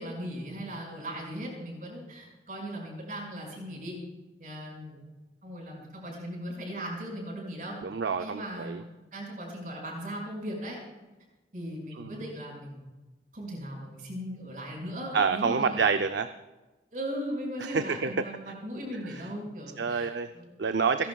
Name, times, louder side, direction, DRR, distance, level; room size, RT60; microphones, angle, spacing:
voice 1, 0.0-4.0 4.4-5.0 5.4-7.8 8.2-10.8 11.5-12.8 13.3-15.8 16.9-20.1 20.3-20.5 21.0-21.1, equal, 50° right, -1 dB, 5.5 m, -38 dB
voice 2, 7.8-8.8 12.0-12.2 15.1-16.3 17.7-18.1 19.1-19.2 19.8-20.3 20.6-21.1, right 5 dB, 85° right, 8 dB, 0.5 m, -27 dB
29.5 x 11.0 x 2.3 m, 1.1 s
head